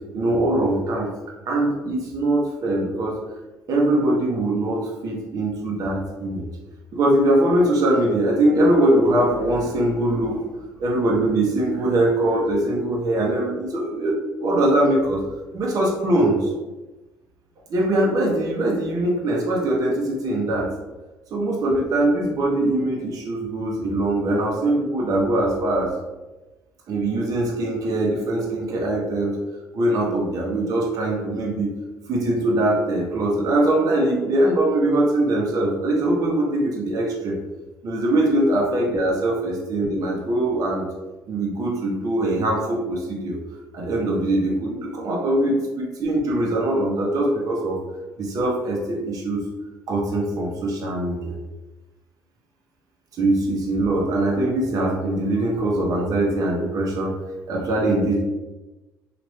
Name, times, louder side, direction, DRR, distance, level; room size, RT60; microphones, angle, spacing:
voice 1, 0.1-1.1 1.5-3.2 3.7-6.5 6.9-10.5 10.8-15.2 15.5-16.5 17.7-20.7 21.3-25.9 26.9-29.4 29.7-31.7 32.1-37.4 37.8-40.9 41.3-43.4 43.7-47.8 48.2-49.4 49.9-51.3 53.2-57.1 57.5-58.2, right 1 dB, 55° right, -2 dB, 0.8 m, -22 dB
3.1 x 2.5 x 3.0 m, 1.1 s
supercardioid pair, 80°, 7 cm